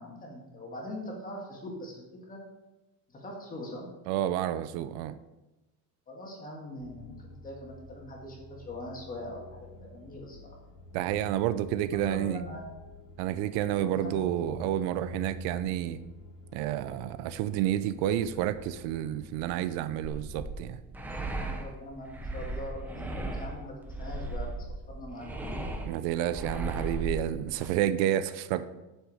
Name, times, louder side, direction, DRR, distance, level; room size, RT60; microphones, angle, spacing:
voice 1, 0.0-2.4 3.1-3.9 6.1-10.4 11.9-12.7 13.8-14.6 21.3-24.7 24.9-25.6, left 1 dB, 20° left, -1 dB, 1.8 m, -42 dB
voice 2, 4.1-5.2 10.9-12.4 13.2-16.0 16.5-20.8 25.8-28.7, right 12 dB, 75° right, 13 dB, 0.6 m, -30 dB
sound 1, 6.8-19.8, left 1 dB, 80° left, 2.0 m, -47 dB
sound 2, 20.0-27.7, right 2 dB, 5° right, 0.4 m, -36 dB
8.1 x 6.5 x 4.9 m, 1.0 s
cardioid pair, 180°, 41 cm